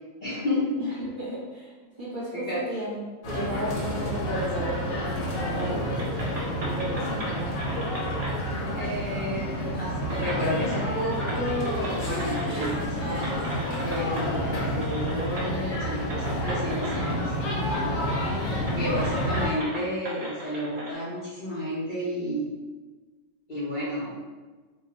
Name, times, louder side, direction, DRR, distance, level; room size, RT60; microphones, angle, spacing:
voice 1, 0.2-0.9 2.3-2.6 8.8-13.3 13.8-17.3 18.7-22.6 23.5-24.2, left 1 dB, 45° left, -10 dB, 0.7 m, -31 dB
voice 2, 0.8-1.7 2.0-3.0 3.2-8.0, right 1 dB, 40° right, -9 dB, 1.0 m, -34 dB
sound 1, 3.2-19.5, equal, 70° left, 1.1 m, -29 dB
sound 2, 5.3-5.7 6.0-8.4 9.5-9.6 10.0-12.9 13.2-14.3 14.8-15.5 16.1-17.4 17.7-18.2 18.4-20.9, right 1 dB, 55° right, 0.4 m, -38 dB
2.5 x 2.3 x 3.9 m, 1.3 s
omnidirectional pair, 1.5 m